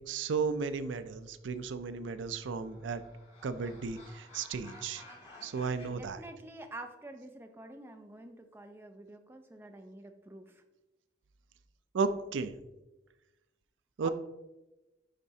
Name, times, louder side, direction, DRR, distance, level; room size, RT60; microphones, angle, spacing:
voice 1, 0.1-3.0 3.4-5.0 5.4-6.2 11.9-12.5 14.0-14.1, right 5 dB, 85° right, 12 dB, 0.4 m, -34 dB
sound 1, 2.0-5.9, left 2 dB, 35° left, 2.2 m, -54 dB
voice 2, 5.9-10.6 14.0-14.1, right 2 dB, 10° right, 5 dB, 0.4 m, -48 dB
10.0 x 4.2 x 2.7 m, 1.0 s
head